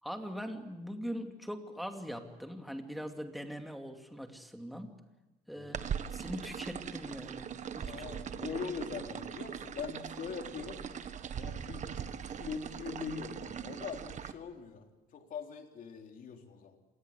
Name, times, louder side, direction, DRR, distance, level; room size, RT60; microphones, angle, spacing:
voice 1, 0.0-4.9 5.5-5.8 6.1-7.5 7.7-8.5, equal, ahead, 5 dB, 2.6 m, -42 dB
voice 2, 5.5-5.9 7.9-16.8, left 6 dB, 55° left, 4 dB, 3.5 m, -43 dB
sound 1, 5.7-14.3, right 8 dB, 45° right, 1.5 m, -40 dB
26.5 x 19.5 x 8.3 m, 1.1 s
cardioid pair, 110°, 17 cm